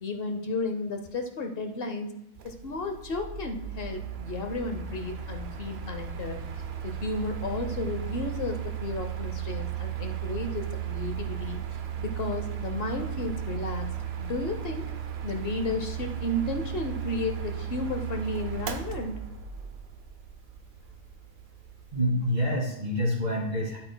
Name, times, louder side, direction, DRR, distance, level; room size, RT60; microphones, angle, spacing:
voice 1, 0.0-2.1 2.4-6.4 6.8-11.6 12.0-13.9 14.2-14.8 15.2-19.2, left 2 dB, 65° left, 5 dB, 1.0 m, -33 dB
Mechanical fan, 2.4-22.0, right 9 dB, 80° right, 0.9 m, -35 dB
voice 2, 21.9-23.8, equal, 45° right, -4 dB, 2.4 m, -27 dB
9.9 x 8.5 x 2.2 m, 0.77 s
omnidirectional pair, 1.1 m